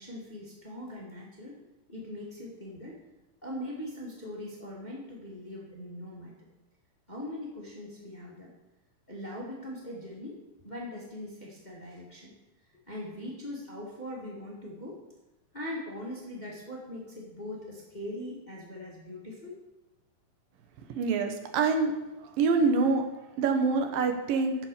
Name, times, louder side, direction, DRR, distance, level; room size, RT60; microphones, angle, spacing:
voice 1, 0.0-1.5 1.9-3.0 3.4-6.3 7.1-8.5 9.1-10.4 10.6-12.3 12.9-15.0 15.5-19.5, left 1 dB, 20° left, -4 dB, 1.4 m, -41 dB
voice 2, 21.0-21.9 22.2-23.0 23.4-24.6, right 4 dB, 90° right, 5 dB, 2.9 m, -25 dB
8.8 x 7.7 x 6.6 m, 0.99 s
omnidirectional pair, 3.9 m